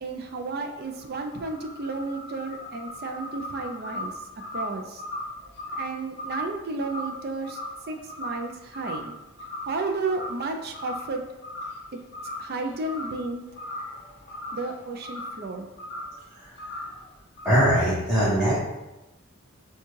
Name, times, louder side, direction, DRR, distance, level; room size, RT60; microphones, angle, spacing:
voice 1, 0.0-4.1 4.5-5.0 5.7-7.6 7.9-9.2 9.7-11.2 11.9-12.0 12.4-13.4 14.5-15.7, right 3 dB, 50° right, 4 dB, 0.4 m, -32 dB
sound 1, 0.8-8.5 8.7-9.1 9.4-10.5 10.7-11.1 11.4-11.9 12.1-13.2 13.5-15.4 15.8-16.2 16.6-17.0 17.4-17.9, left 1 dB, 50° left, 0.5 m, -37 dB
voice 2, 17.4-18.6, equal, 5° right, -11 dB, 1.0 m, -21 dB
6.7 x 2.3 x 3.1 m, 1.0 s
head